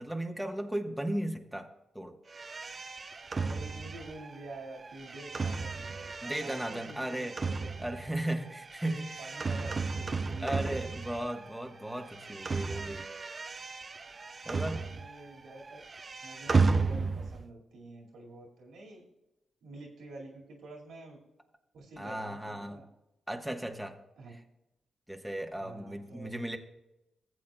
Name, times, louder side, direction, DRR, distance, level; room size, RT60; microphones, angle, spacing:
voice 1, 0.0-1.7 1.9-2.1 6.2-7.3 7.8-9.2 10.4-13.1 14.4-14.8 22.0-22.8 23.3-24.0 25.1-26.6, right 1 dB, 5° right, 3 dB, 1.1 m, -36 dB
sound 1, 2.3-11.6 11.8-15.3 15.6-17.5, right 4 dB, 40° right, 0.5 m, -34 dB
voice 2, 3.4-7.7 8.9-10.8 14.7-15.8 16.2-19.0 19.6-21.2 21.7-22.8 24.2-24.4 25.6-26.3, right 2 dB, 75° right, -1 dB, 2.0 m, -48 dB
16.5 x 7.5 x 2.2 m, 0.93 s
hypercardioid pair, 40°, 0 cm